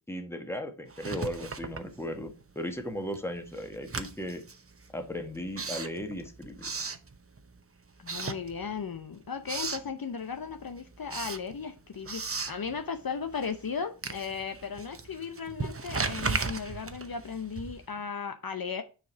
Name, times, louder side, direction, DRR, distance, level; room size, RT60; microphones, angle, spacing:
voice 1, 0.1-4.4 4.9-6.7, equal, 5° left, 1.5 m, -36 dB
Writing, 0.9-2.5 2.8-7.6 8.0-9.0 9.2-9.9 10.3-18.0, right 4 dB, 30° right, 0.8 m, -37 dB
voice 2, 8.0-18.8, left 6 dB, 55° left, 0.8 m, -36 dB
6.8 x 4.9 x 4.6 m
wide cardioid pair, 65°, 43 cm